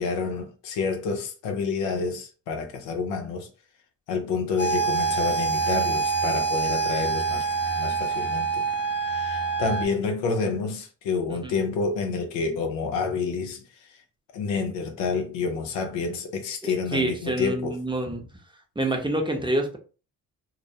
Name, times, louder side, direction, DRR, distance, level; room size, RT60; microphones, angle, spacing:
voice 1, 0.0-3.5 4.1-7.4 7.7-8.7 9.1-13.6 14.3-17.8, left 4 dB, 85° left, 0.6 m, -28 dB
sound 1, 4.6-9.9, right 5 dB, 30° left, 0.5 m, -26 dB
voice 2, 16.6-18.2 18.8-19.8, right 1 dB, 10° right, 0.7 m, -27 dB
2.1 x 2.1 x 2.7 m
supercardioid pair, 50°, 42 cm